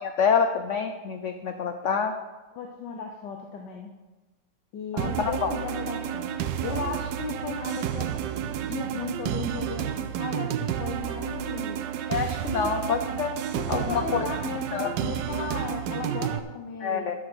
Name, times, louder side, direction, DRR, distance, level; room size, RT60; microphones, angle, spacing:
voice 1, 0.0-2.1 4.9-5.5 12.1-13.3 13.7-14.3 14.7-14.9 15.3-15.4 16.8-17.1, left 6 dB, 60° left, 6 dB, 0.8 m, -27 dB
voice 2, 2.5-3.9 4.7-6.3 6.6-8.1 8.7-11.8 12.6-12.7 13.6-17.1, left 5 dB, 80° left, 2 dB, 1.6 m, -35 dB
sound 1, 5.0-16.4, right 10 dB, 90° right, 1.3 m, -31 dB
13.0 x 6.3 x 6.1 m, 1.2 s
omnidirectional pair, 1.8 m